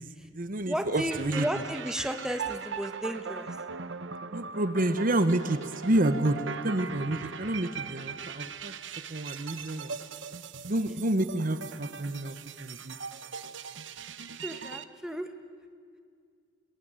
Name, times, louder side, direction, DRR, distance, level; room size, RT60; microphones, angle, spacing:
voice 1, 0.0-1.5 4.3-8.7 9.1-10.0 10.7-13.0, right 1 dB, 45° right, 11 dB, 1.0 m, -29 dB
voice 2, 0.7-3.5 14.4-15.3, equal, 5° right, 6 dB, 1.3 m, -33 dB
sound 1, 1.1-14.8, right 5 dB, 75° right, 1.0 m, -40 dB
28.0 x 22.0 x 9.0 m, 2.2 s
head